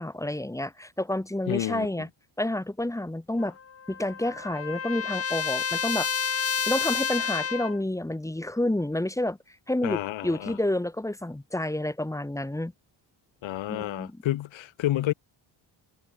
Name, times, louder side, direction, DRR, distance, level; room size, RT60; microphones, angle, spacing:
voice 1, 0.0-2.1 2.4-3.6 3.9-6.1 6.7-9.4 9.7-12.7 13.7-14.2, left 1 dB, 5° left, 1.3 m, -29 dB
voice 2, 1.5-2.0 9.8-10.6 13.4-15.1, left 14 dB, 70° left, 1.0 m, -30 dB
Trumpet, 3.4-7.8, left 6 dB, 30° left, 1.2 m, -30 dB
cardioid pair, 130°, 49 cm